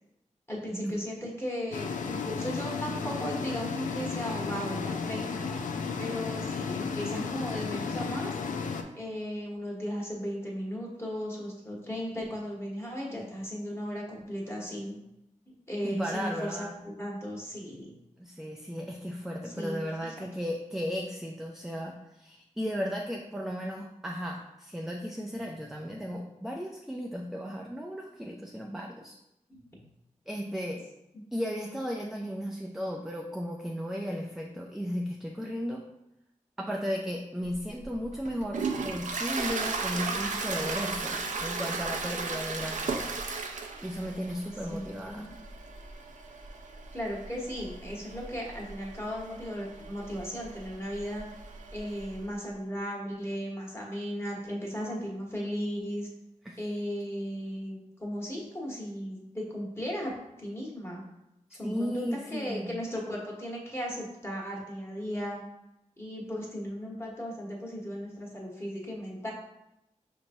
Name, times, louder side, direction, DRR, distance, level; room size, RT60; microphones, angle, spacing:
voice 1, 0.5-5.4 6.0-8.3 8.9-15.0 15.5-16.7 17.0-17.9 19.4-19.9 29.5-29.6 44.7-45.3 46.9-51.2 51.7-56.1 56.6-61.0 61.5-65.4 66.0-69.3, equal, 20° left, -3 dB, 1.3 m, -36 dB
sound 1, 1.7-8.8, left 5 dB, 75° left, 0.4 m, -33 dB
voice 2, 15.8-16.8 18.2-29.2 30.3-30.9 31.3-35.8 36.6-43.0 43.8-45.4 56.4-56.6 61.6-62.8, equal, 5° right, 0 dB, 0.4 m, -35 dB
Toilet flush, 37.5-52.2, right 4 dB, 75° right, 0.5 m, -36 dB
5.1 x 3.0 x 2.6 m, 0.87 s
cardioid pair, 60°, 13 cm